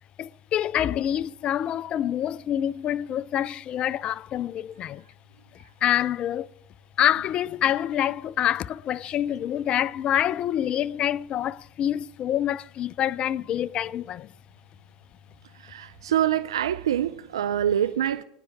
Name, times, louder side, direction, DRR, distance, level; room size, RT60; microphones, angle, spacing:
voice 1, 0.2-5.0 5.8-6.5 7.0-14.3, left 11 dB, 40° left, 0.4 m, -26 dB
voice 2, 15.5-18.2, right 10 dB, 85° right, 0.5 m, -25 dB
30.0 x 10.0 x 3.5 m
hypercardioid pair, 90°, 3 cm